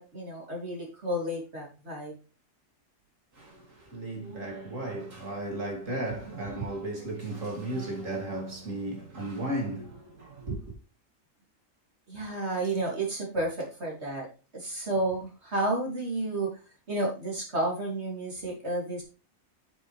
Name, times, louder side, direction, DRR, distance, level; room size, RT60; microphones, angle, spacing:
voice 1, 0.0-2.1 12.1-14.3 14.5-16.5 16.9-19.0, right 2 dB, 55° right, 3.9 m, -31 dB
voice 2, 3.3-10.7, right 2 dB, 75° right, 3.3 m, -35 dB
9.1 x 7.6 x 3.5 m
omnidirectional pair, 1.4 m